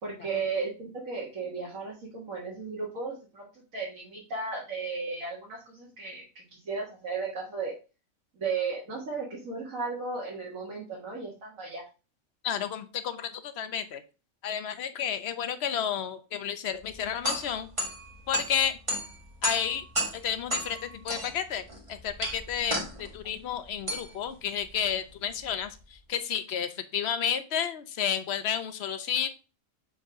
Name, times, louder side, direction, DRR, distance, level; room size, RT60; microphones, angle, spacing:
voice 1, 0.0-7.7 8.4-11.9, right 4 dB, 75° right, -4 dB, 2.2 m, -35 dB
voice 2, 12.4-14.0 14.4-17.7 18.3-18.8 19.4-19.8 20.2-21.6 21.9-29.3, left 8 dB, 55° left, 10 dB, 1.0 m, -31 dB
sound 1, 16.8-25.9, equal, 25° right, 1.8 m, -35 dB
6.3 x 5.6 x 3.6 m, 0.32 s
omnidirectional pair, 1.4 m